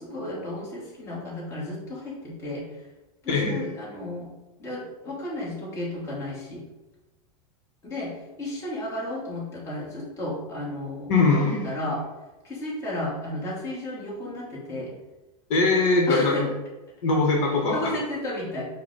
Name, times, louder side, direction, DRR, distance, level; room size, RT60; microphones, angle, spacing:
voice 1, 0.0-2.6 3.2-4.3 4.6-6.6 7.8-12.0 12.4-14.9 16.1-16.5 17.7-18.6, left 1 dB, 15° left, -7 dB, 1.2 m, -33 dB
voice 2, 3.3-3.7 11.1-11.7 15.5-16.5 17.0-17.9, left 3 dB, 55° left, -1 dB, 1.0 m, -22 dB
4.9 x 2.1 x 4.5 m, 1.1 s
supercardioid pair, 160°, 20 cm